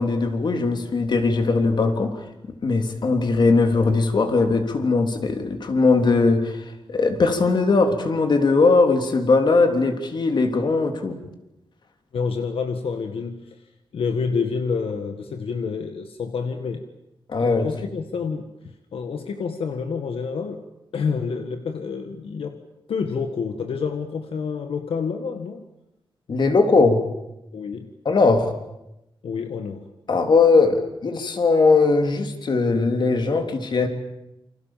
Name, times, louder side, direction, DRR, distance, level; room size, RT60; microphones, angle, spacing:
voice 1, 0.0-2.1 2.6-11.2 17.3-17.7 26.3-27.1 28.0-28.5 30.1-33.9, left 3 dB, 55° left, 6 dB, 3.4 m, -19 dB
voice 2, 12.1-13.6 13.9-16.8 17.4-20.7 20.9-22.6 22.9-25.6 27.5-27.9 29.2-29.9, left 5 dB, 85° left, 7 dB, 1.7 m, -28 dB
28.5 x 25.5 x 7.5 m, 0.90 s
wide cardioid pair, 135°, 9 cm